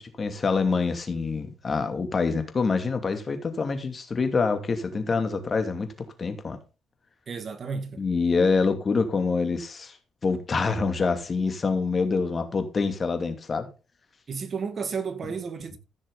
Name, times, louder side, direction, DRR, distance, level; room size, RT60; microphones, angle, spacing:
voice 1, 0.0-5.9 6.2-6.6 8.0-10.0 10.2-13.7, left 4 dB, 35° left, 2.6 m, -26 dB
voice 2, 7.3-8.1 14.3-15.8, right 5 dB, 45° right, 1.9 m, -32 dB
15.0 x 6.4 x 3.9 m
cardioid pair, 90°, 0 cm